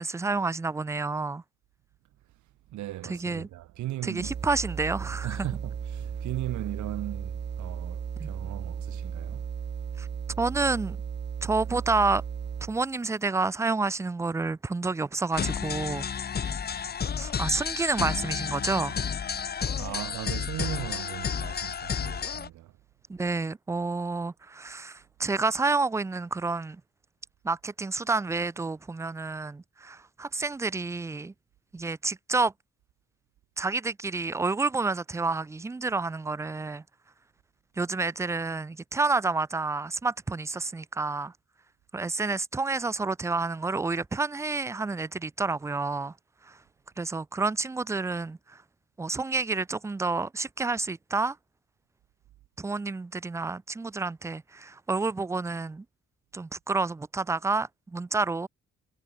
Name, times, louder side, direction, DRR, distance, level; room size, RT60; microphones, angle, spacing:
voice 1, 0.0-1.4 3.1-3.5 4.0-5.5 8.2-8.3 10.0-10.1 10.4-11.0 11.4-12.2 12.6-16.1 17.2-19.0 23.1-26.8 27.4-31.3 31.7-32.5 33.6-36.8 37.8-41.3 41.9-46.1 46.4-46.6 47.0-48.6 49.0-51.4 52.6-55.8 56.3-58.5, right 3 dB, 10° right, 0.3 m, -29 dB
voice 2, 2.7-4.5 5.2-9.5 19.8-22.8, right 15 dB, 70° right, 0.8 m, -37 dB
sound 1, 4.2-12.9, right 7 dB, 35° right, 0.9 m, -35 dB
sound 2, 15.3-22.5, left 7 dB, 35° left, 0.8 m, -31 dB
cardioid pair, 90°, 30 cm